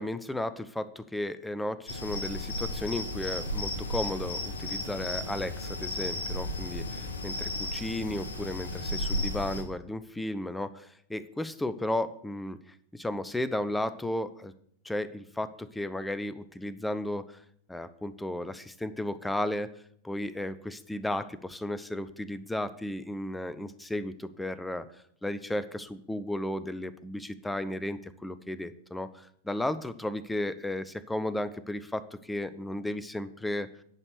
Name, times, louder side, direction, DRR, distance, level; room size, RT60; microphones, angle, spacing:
voice 1, 0.0-14.5 14.8-17.4 17.7-19.7 20.0-24.9 25.2-33.7, left 1 dB, 5° left, 13 dB, 0.6 m, -34 dB
sound 1, 1.9-9.6, left 1 dB, 70° left, 1.3 m, -34 dB
10.5 x 5.4 x 6.5 m, 0.66 s
figure-of-eight pair, 90°, 0 cm